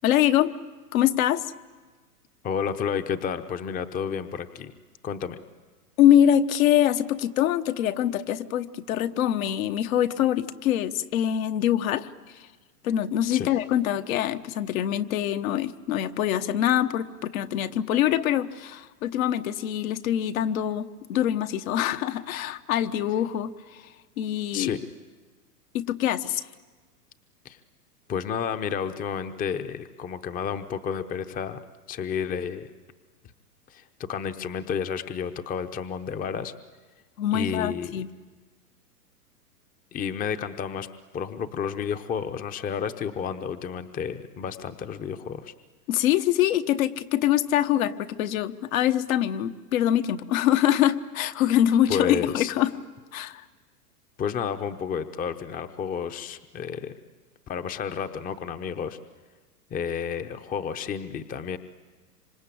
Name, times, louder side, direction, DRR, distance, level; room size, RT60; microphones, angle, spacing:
voice 1, 0.0-0.5 0.9-1.5 6.0-12.5 12.8-23.9 24.2-24.8 25.7-26.5 37.2-38.1 45.9-52.7 53.1-53.4, left 11 dB, 55° left, 9 dB, 1.3 m, -24 dB
voice 2, 2.4-4.7 5.0-5.4 13.3-13.5 24.5-24.8 27.4-27.6 28.1-31.6 31.9-32.7 33.7-36.5 37.3-38.0 39.9-40.9 41.1-45.5 51.9-52.5 54.2-56.9 57.5-59.0 59.7-61.6, left 7 dB, 15° left, 10 dB, 0.9 m, -31 dB
26.5 x 25.5 x 8.6 m, 1.3 s
hypercardioid pair, 120°, 48 cm